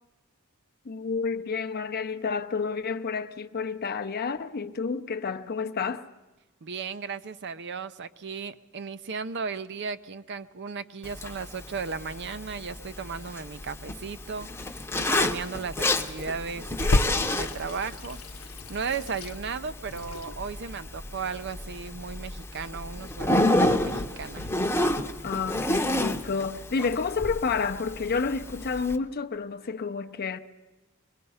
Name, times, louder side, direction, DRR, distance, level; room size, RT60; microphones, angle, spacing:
voice 1, 0.9-6.1 25.2-30.4, left 5 dB, 45° left, 0.6 m, -30 dB
voice 2, 6.6-24.5, right 5 dB, 55° right, 0.6 m, -36 dB
Zipper (clothing), 11.0-29.0, left 1 dB, 10° left, 0.8 m, -30 dB
Water tap faucet / Sink (filling or washing), 16.8-25.8, left 2 dB, 85° left, 0.7 m, -34 dB
23.0 x 20.5 x 5.5 m
head